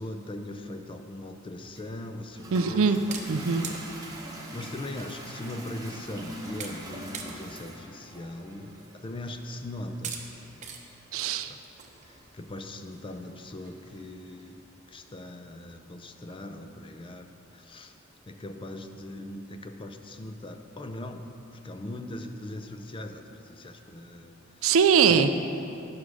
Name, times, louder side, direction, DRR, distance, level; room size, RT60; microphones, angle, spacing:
voice 1, 0.0-3.0 3.6-3.7 4.1-10.2 11.5-11.6 12.0-14.6 14.9-17.9 18.3-21.3 21.5-24.7, left 1 dB, 25° left, 6 dB, 0.5 m, -40 dB
Toilet flush, 1.8-14.5, right 1 dB, 20° right, 1.0 m, -45 dB
voice 2, 2.5-3.0 3.3-3.7 11.1-11.5 24.6-25.3, right 6 dB, 80° right, 9 dB, 0.4 m, -22 dB
sound 1, 3.1-4.2 5.1-5.2 5.5-5.6 6.0-6.2 6.6-6.9 7.1-7.6 8.1-8.2 9.1-9.3 10.0-10.2 10.6-10.8 11.1-12.7 13.2-13.3 13.6-13.7 14.0-14.1 14.4-14.7, right 6 dB, 35° right, 0.8 m, -41 dB
9.6 x 6.3 x 4.8 m, 2.7 s
head